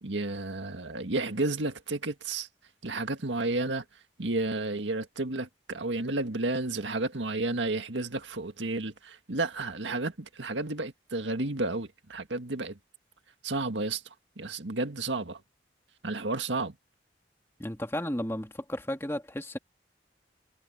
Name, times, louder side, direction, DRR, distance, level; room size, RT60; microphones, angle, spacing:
voice 1, 0.0-2.5 2.8-3.8 4.2-12.8 13.4-14.0 14.4-15.4 16.0-16.7, right 2 dB, 90° right, 1.8 m, -31 dB
voice 2, 17.6-19.6, left 1 dB, 15° left, 2.5 m, -33 dB
head